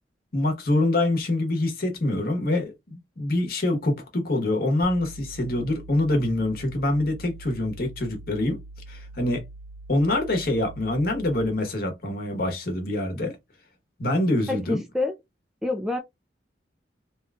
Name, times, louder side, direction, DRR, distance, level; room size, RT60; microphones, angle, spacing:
voice 1, 0.3-8.6 8.9-9.4 9.9-13.4 14.0-14.8, left 1 dB, 55° left, 1.0 m, -25 dB
sound 1, 4.8-11.6, right 2 dB, 30° left, 1.1 m, -43 dB
voice 2, 14.5-15.1 15.6-16.0, left 2 dB, ahead, 0.3 m, -27 dB
3.0 x 2.3 x 3.3 m
head